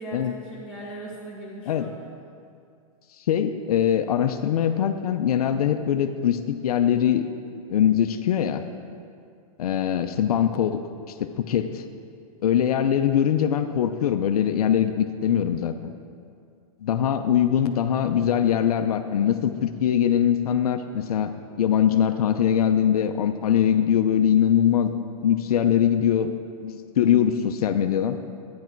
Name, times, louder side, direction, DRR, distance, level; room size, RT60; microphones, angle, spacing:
voice 1, 0.0-1.9 27.0-27.3, right 1 dB, 5° right, -8 dB, 1.8 m, -38 dB
voice 2, 3.3-7.2 7.7-8.7 9.6-10.8 11.2-11.8 12.4-15.8 16.8-21.3 21.6-24.9 25.2-26.3 26.6-28.2, left 9 dB, 75° left, 7 dB, 0.7 m, -22 dB
12.0 x 9.5 x 4.6 m, 2.3 s
hypercardioid pair, 150°, 19 cm